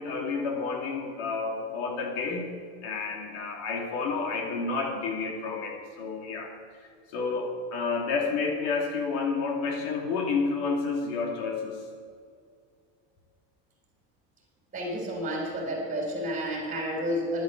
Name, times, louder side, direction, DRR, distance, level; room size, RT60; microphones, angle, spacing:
voice 1, 0.0-6.5 7.1-11.8, left 4 dB, 75° left, 1 dB, 2.6 m, -30 dB
voice 2, 14.7-17.4, equal, 25° right, 0 dB, 3.7 m, -30 dB
11.0 x 9.6 x 8.1 m, 2.1 s
cardioid pair, 155°, 34 cm